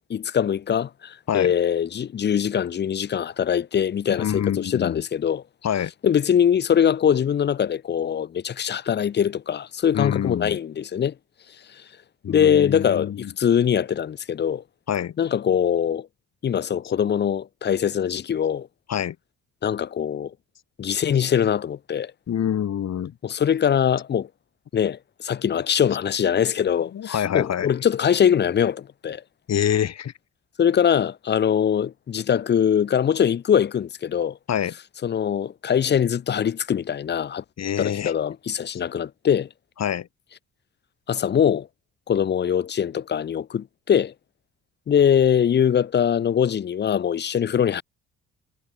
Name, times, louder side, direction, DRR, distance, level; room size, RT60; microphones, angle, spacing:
voice 1, 0.1-5.4 6.0-11.1 12.3-14.6 15.2-16.1 16.4-18.7 19.6-20.3 20.8-22.1 23.2-24.3 24.7-29.2 30.6-34.4 35.0-37.4 37.8-39.5 41.1-41.7 42.1-44.1 44.9-47.8, left 8 dB, 35° left, 0.6 m, -22 dB
voice 2, 4.2-5.0 5.6-5.9 9.9-10.6 12.2-13.3 14.9-15.2 18.9-19.2 22.3-23.1 26.9-27.7 29.5-30.1 34.5-34.7 37.6-38.1 38.7-38.8 39.8-40.1, left 9 dB, 60° left, 3.2 m, -26 dB
cardioid pair, 90°, 30 cm